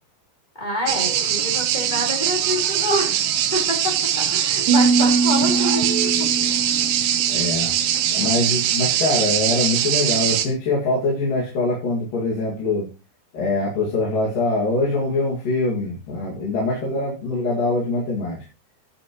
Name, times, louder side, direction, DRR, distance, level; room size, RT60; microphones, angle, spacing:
voice 1, 0.6-6.3, equal, 10° left, -1 dB, 3.9 m, -27 dB
sound 1, 0.9-10.5, right 10 dB, 85° right, 3.3 m, -22 dB
sound 2, 4.7-8.1, right 4 dB, 40° right, 3.5 m, -23 dB
voice 2, 7.3-7.7 8.1-12.9 13.3-18.4, left 2 dB, 55° left, -4 dB, 3.7 m, -23 dB
14.0 x 9.6 x 3.1 m, 0.32 s
omnidirectional pair, 4.9 m